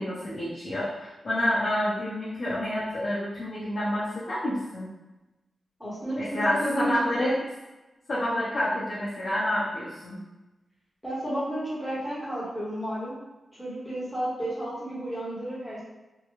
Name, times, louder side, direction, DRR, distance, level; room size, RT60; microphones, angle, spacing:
voice 1, 0.0-4.9 6.1-7.3 8.1-10.2, left 1 dB, 40° left, -12 dB, 0.9 m, -28 dB
voice 2, 5.8-7.4 11.0-13.2 13.6-15.8, right 1 dB, ahead, -9 dB, 1.1 m, -32 dB
3.6 x 2.3 x 3.1 m, 1.0 s
wide cardioid pair, 170°, 0 cm